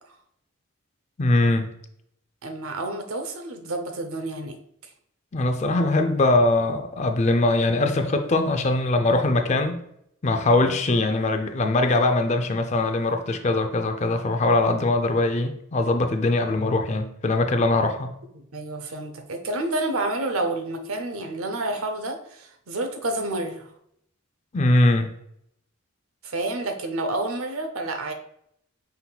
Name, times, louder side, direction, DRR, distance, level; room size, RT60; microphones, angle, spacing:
voice 1, 1.2-1.7 5.3-9.8 10.2-18.1 24.5-25.1, left 2 dB, 35° left, 0.4 m, -22 dB
voice 2, 2.4-4.6 18.3-23.7 26.2-28.1, right 2 dB, 85° right, 0.7 m, -29 dB
5.5 x 4.0 x 2.3 m
head